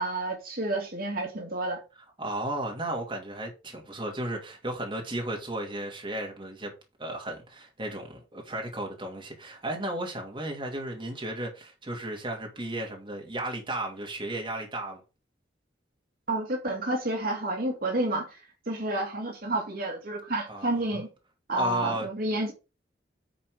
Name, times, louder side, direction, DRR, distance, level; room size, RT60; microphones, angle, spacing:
voice 1, 0.0-1.8 16.3-18.4 18.7-21.1 21.5-22.5, right 2 dB, 55° right, 2.2 m, -30 dB
voice 2, 2.2-6.7 7.0-15.0 20.5-21.0 21.5-22.1, right 1 dB, 30° right, 2.5 m, -34 dB
10.0 x 4.4 x 5.0 m
head